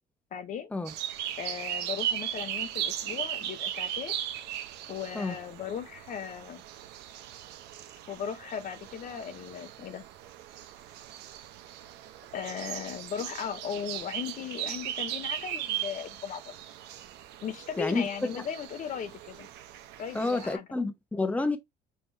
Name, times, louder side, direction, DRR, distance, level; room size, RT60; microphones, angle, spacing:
voice 1, 0.3-0.7 1.4-4.2 4.9-6.6 8.1-10.0 12.3-16.5 17.4-19.5 20.0-20.7, left 8 dB, 50° left, 0.6 m, -37 dB
sound 1, 0.9-20.5, right 11 dB, 85° right, 0.7 m, -38 dB
voice 2, 20.1-21.6, left 3 dB, 10° left, 0.7 m, -29 dB
5.4 x 2.8 x 3.1 m
cardioid pair, 110°, 17 cm